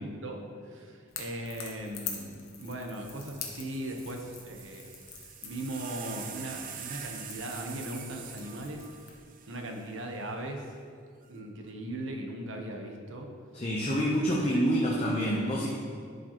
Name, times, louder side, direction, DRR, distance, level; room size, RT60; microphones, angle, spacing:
voice 1, 0.0-4.9 5.4-8.9 9.5-10.7 11.3-13.3 13.9-14.6, right 1 dB, 70° right, 2 dB, 0.9 m, -39 dB
Crackle / Crack, 1.1-9.2, left 7 dB, 90° left, 1.0 m, -45 dB
sound 1, 2.6-2.7 2.9-10.3 11.2-11.7, right 8 dB, 45° right, 0.5 m, -45 dB
voice 2, 13.5-15.7, equal, 30° left, -4 dB, 0.7 m, -27 dB
10.5 x 5.1 x 3.0 m, 2.1 s
head